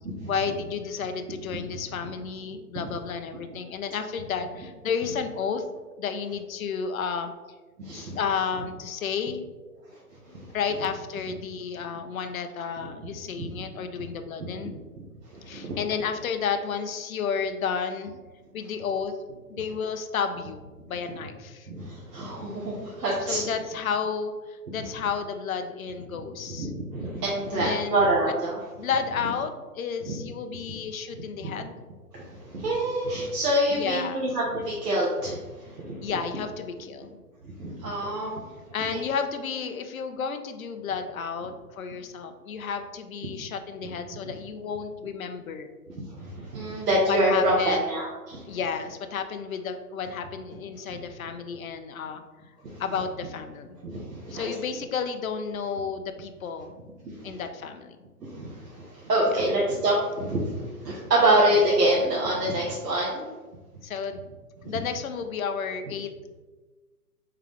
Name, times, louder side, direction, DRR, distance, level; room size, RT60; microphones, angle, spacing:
voice 1, 0.3-5.6 6.0-7.3 7.9-9.5 10.3-14.7 15.5-18.1 18.5-19.2 19.5-21.7 23.3-26.7 27.5-28.1 28.8-31.8 33.7-34.2 36.0-37.2 38.7-45.7 47.0-47.8 48.5-52.2 52.8-53.8 54.3-56.7 57.2-58.0 63.8-64.3 64.6-66.1, left 6 dB, 60° left, 7 dB, 0.5 m, -32 dB
voice 2, 7.8-8.2 10.3-10.5 13.4-13.5 14.4-14.5 15.3-15.8 21.7-23.5 26.6-28.7 30.1-30.2 31.4-31.5 32.1-36.0 37.6-38.4 38.9-39.0 44.1-44.3 46.0-48.6 50.9-51.0 52.6-52.8 53.8-54.5 57.0-57.4 58.2-63.3 64.6-64.7, right 1 dB, 80° right, -5 dB, 1.1 m, -26 dB
3.7 x 3.4 x 3.4 m, 1.3 s
hypercardioid pair, 165°, 47 cm